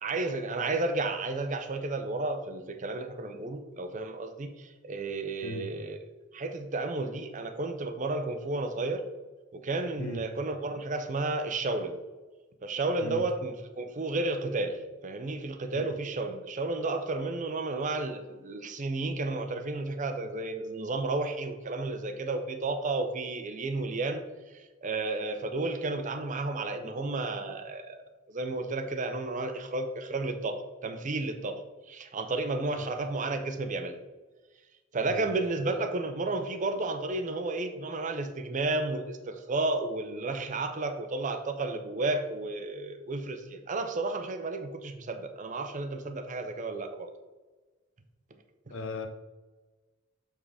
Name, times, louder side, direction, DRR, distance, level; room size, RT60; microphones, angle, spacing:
voice 1, 0.0-6.0 6.3-9.0 9.5-12.0 12.6-24.2 24.8-31.6 31.9-34.0 34.9-47.1, right 2 dB, 40° right, 8 dB, 0.6 m, -32 dB
voice 2, 48.7-49.1, left 2 dB, 80° left, 5 dB, 0.7 m, -38 dB
7.2 x 3.7 x 4.9 m, 1.2 s
head